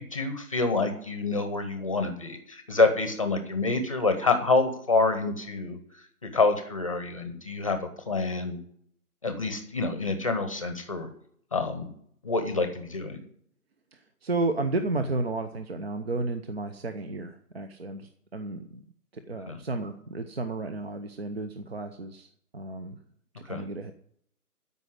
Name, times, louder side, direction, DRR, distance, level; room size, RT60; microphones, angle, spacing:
voice 1, 0.0-5.8 6.3-8.6 9.2-11.1 11.5-11.9 12.2-13.2 19.5-19.6 23.4-23.6, left 3 dB, 20° left, 8 dB, 0.8 m, -27 dB
voice 2, 13.9-18.8 19.1-22.3 22.5-23.0 23.3-23.9, right 2 dB, 40° right, 8 dB, 0.8 m, -32 dB
13.5 x 5.4 x 9.5 m, 0.67 s
figure-of-eight pair, 160°, 46 cm